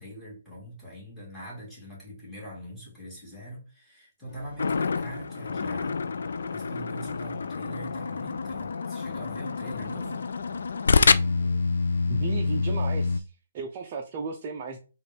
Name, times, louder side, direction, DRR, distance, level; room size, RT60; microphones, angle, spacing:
voice 1, 0.0-10.3, equal, ahead, 1.8 m, -42 dB
sound 1, 4.3-11.6, left 1 dB, 50° left, 1.3 m, -47 dB
sound 2, 4.6-13.2, left 4 dB, 70° left, 0.3 m, -27 dB
voice 2, 12.1-14.8, right 4 dB, 30° right, 0.5 m, -35 dB
4.0 x 2.4 x 3.4 m
hypercardioid pair, 155°, 0 cm